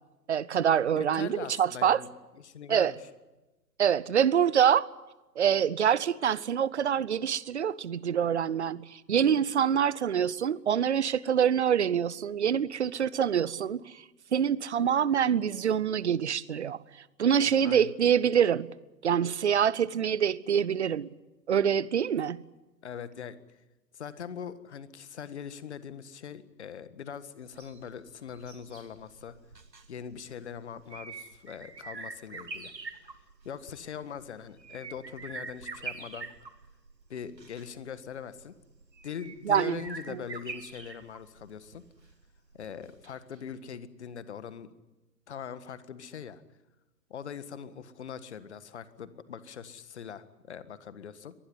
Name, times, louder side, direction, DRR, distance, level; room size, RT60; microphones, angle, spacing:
voice 1, 0.3-2.0 2.7-2.9 3.8-4.9 5.4-14.0 14.3-16.8 17.2-18.7 19.0-21.1 21.5-22.4 39.5-39.8 40.1-40.2, right 8 dB, 45° right, 0.9 m, -25 dB
voice 2, 1.0-2.1 2.4-3.0 17.4-17.9 22.8-23.4 23.9-29.4 29.9-32.7 33.5-36.3 37.1-38.6 39.0-41.8 42.5-44.7 45.3-46.4 47.1-51.3, left 7 dB, 40° left, 1.7 m, -42 dB
sound 1, 27.4-43.4 43.7-43.8, right 4 dB, 75° right, 2.2 m, -45 dB
23.5 x 19.5 x 9.8 m
figure-of-eight pair, 130°, 50 cm